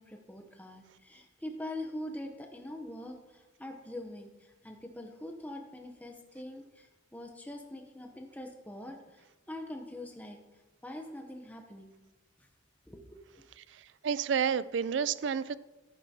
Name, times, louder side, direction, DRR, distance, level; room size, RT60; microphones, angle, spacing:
voice 1, 0.0-10.4 10.8-11.9 12.4-12.5 12.9-13.4, left 1 dB, 10° left, 3 dB, 0.7 m, -43 dB
voice 2, 13.7-15.5, right 7 dB, 70° right, 17 dB, 0.4 m, -30 dB
10.5 x 10.0 x 2.8 m, 1.1 s
head